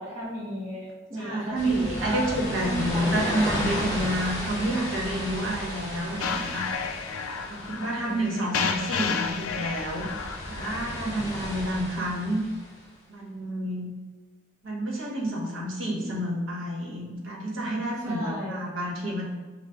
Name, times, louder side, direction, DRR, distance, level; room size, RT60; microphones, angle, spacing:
voice 1, 0.0-2.3 2.6-3.2 5.3-5.4 8.0-8.2 18.0-18.6, equal, 35° right, -8 dB, 1.0 m, -34 dB
voice 2, 1.2-6.7 7.5-10.1 10.5-12.4 13.1-13.9 14.6-19.3, right 1 dB, 70° right, -4 dB, 1.1 m, -29 dB
sound 1, 1.5-12.7, equal, 15° left, 0.8 m, -34 dB
sound 2, 6.2-11.2, left 6 dB, 90° left, 0.3 m, -32 dB
6.2 x 2.2 x 2.3 m, 1.3 s
head